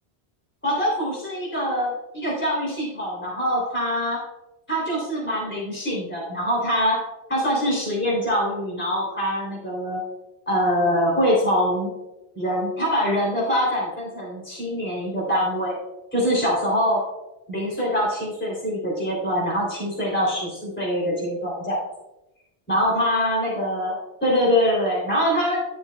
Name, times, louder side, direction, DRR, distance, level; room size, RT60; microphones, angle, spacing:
voice 1, 0.6-4.3 4.7-7.0 7.3-10.0 10.5-11.9 12.3-15.8 16.1-17.0 17.5-21.8 22.7-25.6, equal, 10° left, -5 dB, 3.2 m, -24 dB
12.5 x 7.2 x 2.3 m, 0.98 s
omnidirectional pair, 1.1 m